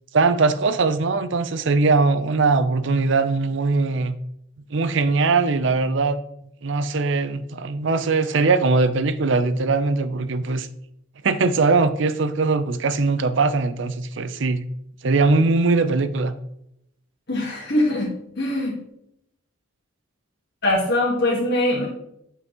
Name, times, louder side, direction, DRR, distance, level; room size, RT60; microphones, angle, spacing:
voice 1, 0.1-4.2 4.7-6.2 6.6-10.7 11.2-14.6 15.0-16.3, right 3 dB, 60° right, 12 dB, 0.5 m, -20 dB
voice 2, 17.3-18.7 20.6-21.9, left 1 dB, 55° left, -4 dB, 1.5 m, -22 dB
8.3 x 5.6 x 3.0 m, 0.78 s
head